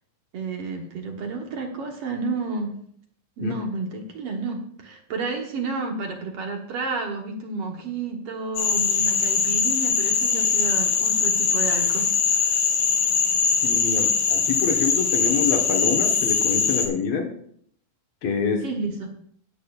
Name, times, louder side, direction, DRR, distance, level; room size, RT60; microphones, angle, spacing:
voice 1, 0.3-2.7 3.4-12.6 18.6-19.1, right 3 dB, 60° right, 3 dB, 1.7 m, -31 dB
Frog, 8.6-16.9, left 6 dB, 80° left, 3.2 m, -22 dB
voice 2, 13.6-17.3 18.2-18.6, left 5 dB, 60° left, 3 dB, 1.9 m, -26 dB
17.0 x 8.5 x 2.4 m, 0.64 s
omnidirectional pair, 3.9 m